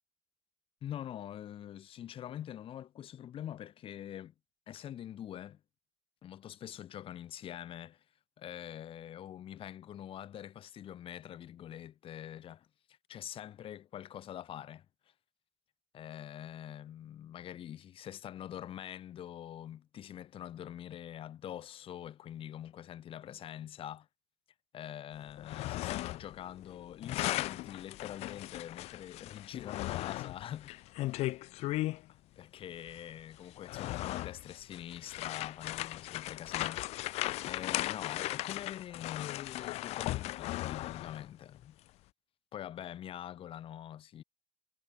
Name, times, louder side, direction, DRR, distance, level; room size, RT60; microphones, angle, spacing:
voice 1, 0.8-4.3 4.7-5.6 6.2-8.0 8.4-14.9 15.9-24.1 24.7-30.8 32.1-41.8 42.5-44.2, left 11 dB, 55° left, 2.1 m, -45 dB
sound 1, 25.3-26.4 26.6-32.0 32.9-33.0 33.5-41.3, left 17 dB, 70° left, 0.7 m, -37 dB
supercardioid pair, 95°, 11 cm